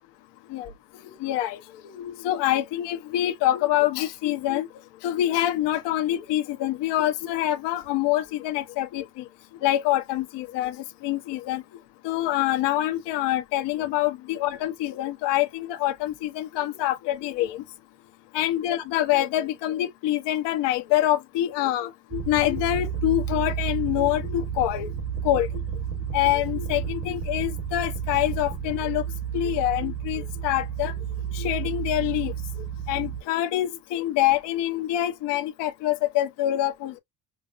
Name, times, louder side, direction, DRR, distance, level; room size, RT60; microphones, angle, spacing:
voice 1, 1.0-4.7 5.0-9.2 9.6-11.6 12.0-17.6 18.3-24.9 25.2-25.5 26.1-29.0 29.3-30.9 31.3-32.3 32.9-37.0, left 13 dB, 75° left, 1.1 m, -25 dB
sound 1, 22.1-33.2, right 8 dB, 35° right, 1.3 m, -31 dB
6.0 x 2.0 x 2.5 m
cardioid pair, 150°, 42 cm